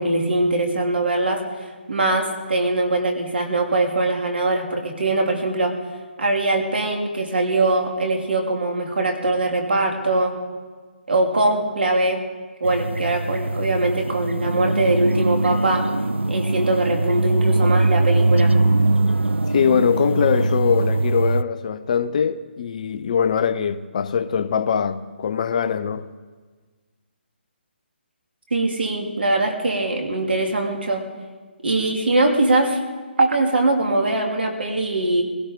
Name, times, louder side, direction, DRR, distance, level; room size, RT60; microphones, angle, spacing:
voice 1, 0.0-1.4 1.9-5.8 6.2-10.4 11.1-12.2 12.6-15.8 16.3-18.6 28.5-31.1 31.6-32.8 33.2-35.2, right 2 dB, 65° right, 2.8 m, -21 dB
sound 1, 12.6-21.4, right 2 dB, 90° right, 0.4 m, -21 dB
voice 2, 19.5-26.1, left 7 dB, 40° left, 0.6 m, -22 dB
20.5 x 17.0 x 4.0 m
figure-of-eight pair, 140°, 6 cm